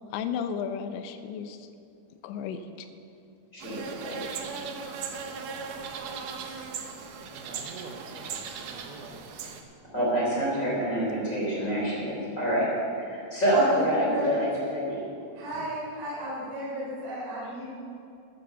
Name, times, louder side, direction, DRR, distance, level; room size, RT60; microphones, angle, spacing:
voice 1, 0.1-1.7 2.2-2.9, left 7 dB, 80° left, 9 dB, 3.0 m, -34 dB
voice 2, 3.5-4.2 9.9-15.0, right 1 dB, 20° left, -5 dB, 4.0 m, -27 dB
sound 1, 3.6-9.6, right 5 dB, 90° right, 1.8 m, -38 dB
voice 3, 7.3-9.5 9.7-9.9, right 3 dB, 70° right, 3 dB, 2.4 m, -46 dB
voice 4, 13.5-14.3 15.3-17.7, equal, 50° right, -7 dB, 5.6 m, -32 dB
12.5 x 12.0 x 7.1 m, 2.6 s
omnidirectional pair, 5.3 m